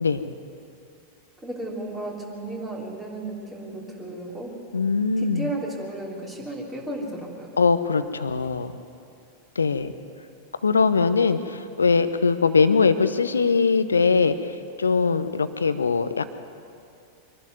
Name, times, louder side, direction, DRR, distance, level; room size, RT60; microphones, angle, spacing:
voice 1, 1.4-4.5 5.2-7.5, right 2 dB, 15° right, -2 dB, 3.5 m, -34 dB
voice 2, 4.7-5.5 7.6-8.7 9.6-9.9 10.6-16.3, left 4 dB, 75° left, 12 dB, 0.9 m, -21 dB
24.0 x 12.0 x 9.5 m, 2.5 s
figure-of-eight pair, 90°, 0 cm